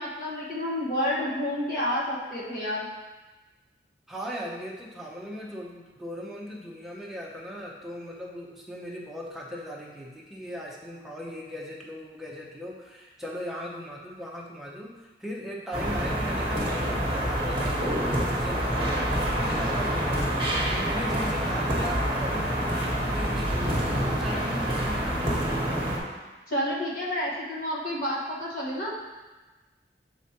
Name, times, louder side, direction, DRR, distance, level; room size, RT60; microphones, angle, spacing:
voice 1, 0.0-2.9 26.5-28.9, equal, 50° left, -6 dB, 1.4 m, -29 dB
voice 2, 4.1-25.5, equal, ahead, -3 dB, 0.7 m, -38 dB
sound 1, 15.7-26.0, equal, 30° right, 1.2 m, -27 dB
7.2 x 4.9 x 2.9 m, 1.2 s
head